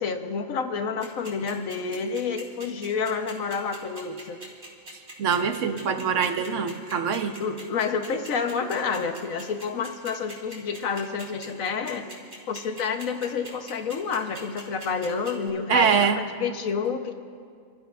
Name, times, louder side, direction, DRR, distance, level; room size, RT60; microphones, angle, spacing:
voice 1, 0.0-4.4 7.4-12.1 12.5-17.1, left 5 dB, 90° left, 6 dB, 1.3 m, -29 dB
sound 1, 1.0-15.5, right 1 dB, 55° right, 3.5 m, -41 dB
voice 2, 5.2-7.4 15.7-16.2, right 6 dB, 70° right, 7 dB, 1.2 m, -23 dB
30.0 x 14.0 x 2.4 m, 2.2 s
omnidirectional pair, 1.4 m